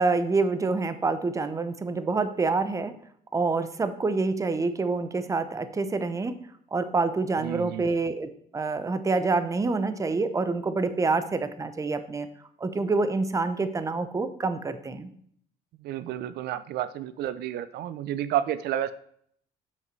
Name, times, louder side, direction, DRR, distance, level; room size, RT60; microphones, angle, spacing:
voice 1, 0.0-2.9 3.3-6.4 6.7-12.3 12.6-15.1, right 3 dB, 20° right, 11 dB, 0.7 m, -27 dB
voice 2, 7.4-7.9 15.8-18.9, right 11 dB, 75° right, 15 dB, 0.5 m, -30 dB
7.6 x 6.5 x 4.5 m, 0.64 s
cardioid pair, 110°, 17 cm